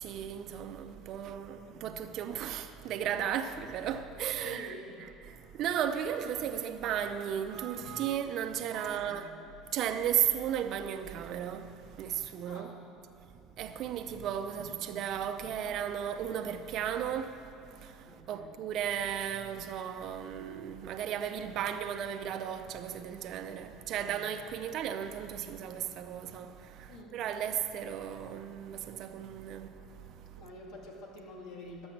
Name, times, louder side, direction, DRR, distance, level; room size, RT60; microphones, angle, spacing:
voice 1, 0.0-4.7 5.2-9.3 9.7-12.7 13.6-30.4, right 9 dB, 55° right, 0.6 m, -35 dB
voice 2, 4.4-4.9 8.9-9.3 12.4-12.8 14.4-14.8 18.0-18.6 23.9-24.2 26.9-27.2 30.3-31.9, left 1 dB, 60° left, 2.4 m, -48 dB
11.5 x 7.0 x 7.4 m
supercardioid pair, 120°, 0 cm